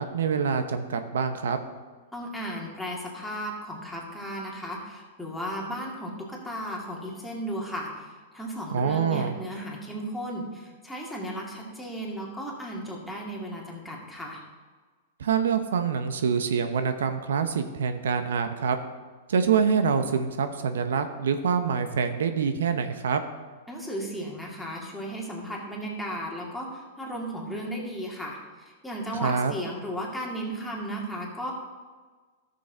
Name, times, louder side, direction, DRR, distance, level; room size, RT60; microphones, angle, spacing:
voice 1, 0.0-1.6 8.7-9.4 15.2-18.8 19.3-23.2 29.2-29.5, right 6 dB, 85° right, 9 dB, 0.7 m, -25 dB
voice 2, 2.1-14.4 23.7-31.5, equal, 5° left, -3 dB, 2.2 m, -35 dB
12.5 x 6.7 x 3.9 m, 1.4 s
hypercardioid pair, 130°, 0 cm